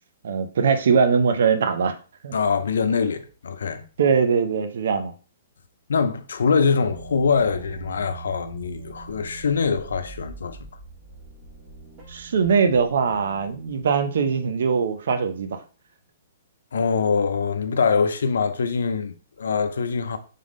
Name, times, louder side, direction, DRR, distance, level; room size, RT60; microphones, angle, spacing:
voice 1, 0.2-1.9 2.2-2.3 4.0-5.1 12.1-15.6, right 6 dB, 70° right, 0.6 m, -21 dB
voice 2, 2.3-3.8 5.9-10.6 16.7-20.2, left 5 dB, 85° left, 0.6 m, -23 dB
sound 1, 6.4-14.9, right 4 dB, 30° right, 1.3 m, -43 dB
3.7 x 3.6 x 3.7 m
hypercardioid pair, 155°, 0 cm